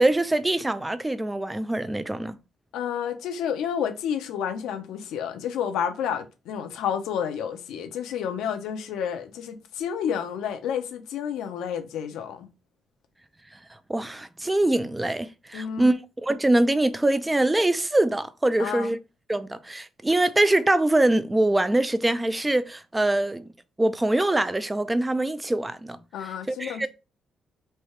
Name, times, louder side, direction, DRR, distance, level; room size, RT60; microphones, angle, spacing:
voice 1, 0.0-2.4 13.9-19.0 19.3-23.5 23.8-26.0 26.5-26.9, right 1 dB, 15° right, 0.4 m, -23 dB
voice 2, 2.7-12.5 15.5-15.9 18.6-18.9 26.1-26.9, left 8 dB, 85° left, 0.7 m, -30 dB
3.3 x 2.7 x 4.4 m
cardioid pair, 90°, 0 cm